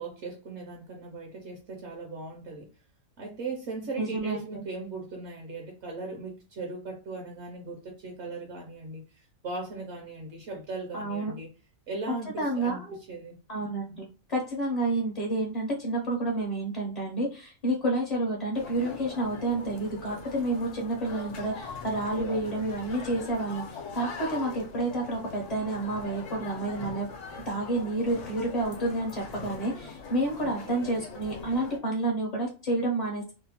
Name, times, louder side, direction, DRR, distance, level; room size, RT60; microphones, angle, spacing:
voice 1, 0.0-2.7 3.2-11.5 11.9-12.8 13.1-13.4 30.4-30.8, right 3 dB, 65° right, 1 dB, 0.8 m, -38 dB
voice 2, 4.0-4.6 10.9-11.3 12.4-13.0 13.5-14.0 14.3-23.6 23.9-27.1 27.5-33.3, right 2 dB, 45° left, -2 dB, 0.5 m, -29 dB
sound 1, 18.5-31.8, left 5 dB, 70° left, 1.0 m, -41 dB
2.8 x 2.1 x 2.8 m, 0.35 s
omnidirectional pair, 1.4 m